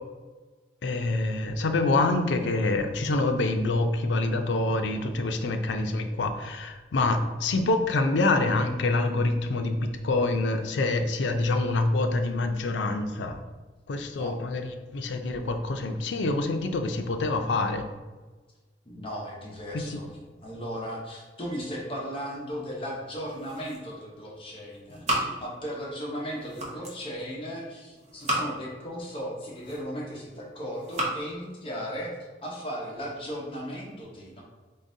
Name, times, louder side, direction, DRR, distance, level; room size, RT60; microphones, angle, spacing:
voice 1, 0.8-13.4 13.9-17.8 19.7-20.0, left 2 dB, 90° left, 6 dB, 0.4 m, -26 dB
voice 2, 18.8-20.1 20.4-32.1 32.4-34.4, equal, 30° left, -3 dB, 0.9 m, -36 dB
sound 1, 23.1-24.1 24.4-25.9 26.2-27.0 27.9-28.8 29.4-30.1 30.7-31.2, right 1 dB, 40° right, 0.8 m, -33 dB
3.8 x 3.6 x 2.7 m, 1.3 s
head